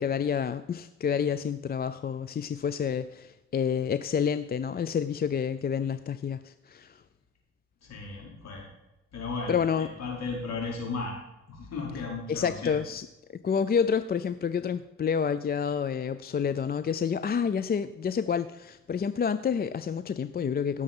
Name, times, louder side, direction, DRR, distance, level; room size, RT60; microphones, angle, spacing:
voice 1, 0.0-7.0 9.5-9.9 12.3-13.1 13.4-20.8, left 7 dB, 30° left, 13 dB, 0.5 m, -29 dB
voice 2, 7.8-8.6 9.1-11.2 11.5-12.7, left 4 dB, 60° left, -2 dB, 5.1 m, -35 dB
17.0 x 6.9 x 5.5 m, 0.97 s
cardioid pair, 90°, 30 cm